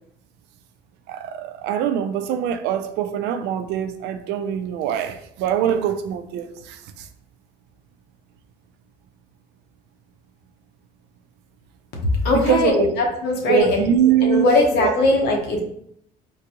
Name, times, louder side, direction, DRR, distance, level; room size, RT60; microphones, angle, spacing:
voice 1, 1.1-7.1 12.3-12.9 13.5-14.5 14.8-14.9, right 9 dB, 85° right, 0.4 m, -23 dB
voice 2, 12.0-13.8 14.2-15.6, left 2 dB, 75° left, 0.9 m, -19 dB
3.9 x 2.3 x 2.9 m
cardioid pair, 110°, 17 cm